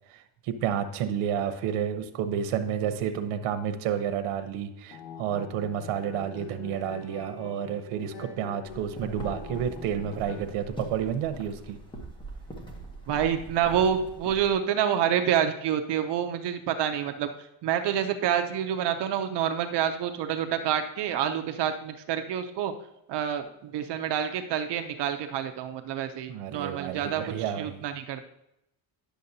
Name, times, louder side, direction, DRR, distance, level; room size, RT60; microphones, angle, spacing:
voice 1, 0.5-11.8 26.3-27.8, right 9 dB, 85° right, 8 dB, 0.9 m, -30 dB
sound 1, 4.8-10.6, left 6 dB, 70° left, 1.1 m, -44 dB
sound 2, 8.6-14.5, right 2 dB, 10° left, 0.9 m, -42 dB
voice 2, 13.1-17.3 17.6-22.7 23.1-27.2 27.6-28.3, right 9 dB, 55° right, 7 dB, 0.7 m, -28 dB
10.0 x 6.6 x 2.7 m, 0.82 s
cardioid pair, 175°, 49 cm